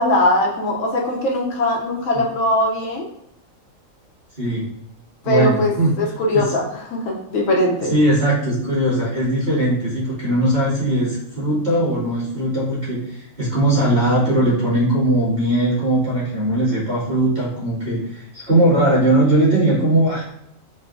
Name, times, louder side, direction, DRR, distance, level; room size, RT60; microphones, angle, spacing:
voice 1, 0.0-3.1 5.2-5.7 6.0-6.6 6.9-7.9, left 1 dB, 70° left, -2 dB, 0.9 m, -20 dB
voice 2, 5.2-5.9 6.3-6.4 7.9-20.3, right 1 dB, 35° right, -9 dB, 1.6 m, -19 dB
4.0 x 2.2 x 2.4 m, 0.76 s
omnidirectional pair, 1.4 m